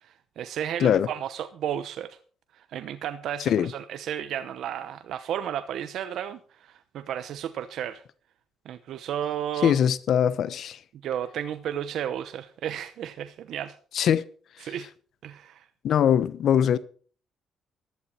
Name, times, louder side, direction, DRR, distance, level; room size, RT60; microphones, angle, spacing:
voice 1, 0.0-2.1 2.5-8.0 8.6-9.8 11.0-13.7 14.6-14.9 15.2-15.6, right 10 dB, 75° right, 0.9 m, -33 dB
voice 2, 3.4-3.7 9.6-10.8 13.9-14.2 15.8-16.8, left 9 dB, 70° left, 1.0 m, -22 dB
15.0 x 11.5 x 4.5 m
cardioid pair, 90°, 0 cm